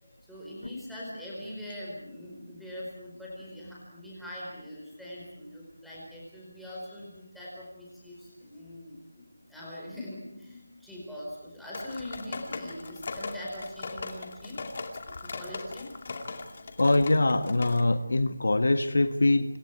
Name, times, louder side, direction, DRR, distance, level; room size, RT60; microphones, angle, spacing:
voice 1, 0.0-9.2 9.5-14.6 14.9-15.9, left 1 dB, ahead, -7 dB, 4.7 m, -42 dB
sound 1, 11.7-17.8, left 3 dB, 30° left, 2.4 m, -39 dB
voice 2, 16.8-19.6, left 2 dB, 60° left, 9 dB, 1.6 m, -23 dB
27.5 x 27.0 x 4.8 m, 0.83 s
figure-of-eight pair, 180°, 0 cm